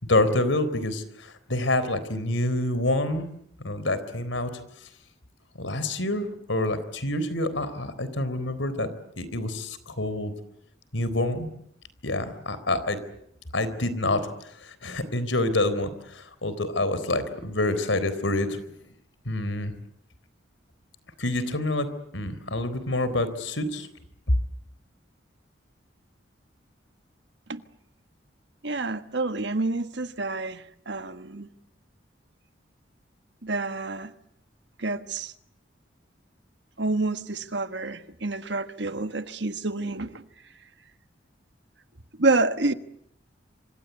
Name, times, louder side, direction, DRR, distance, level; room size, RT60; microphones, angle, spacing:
voice 1, 0.1-3.3 3.6-4.5 5.6-8.9 9.2-10.3 10.9-11.5 12.0-13.0 13.5-14.2 14.6-18.6 19.3-19.7 21.2-21.9 22.1-23.9, left 2 dB, 85° left, 3.9 m, -27 dB
voice 2, 28.6-31.5 33.4-34.1 34.8-35.3 36.8-40.2 42.2-42.7, right 2 dB, 65° right, 1.5 m, -28 dB
27.0 x 26.5 x 8.3 m
head